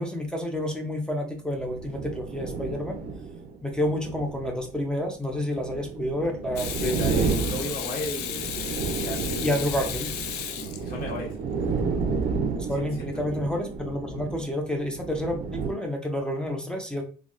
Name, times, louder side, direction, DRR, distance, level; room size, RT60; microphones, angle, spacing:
voice 1, 0.0-3.0 3.6-7.3 9.4-10.1 12.6-17.0, left 1 dB, 5° left, 2 dB, 0.5 m, -29 dB
sound 1, 1.5-15.7, right 5 dB, 60° right, 0.5 m, -31 dB
Water tap faucet / Sink (filling or washing), 6.6-11.3 13.7-13.9, left 9 dB, 80° left, 0.4 m, -34 dB
voice 2, 6.8-8.5 9.0-9.7 10.6-11.3 12.8-12.9, left 1 dB, 60° left, -1 dB, 1.4 m, -35 dB
3.3 x 2.3 x 2.5 m, 0.38 s
cardioid pair, 110°, 17 cm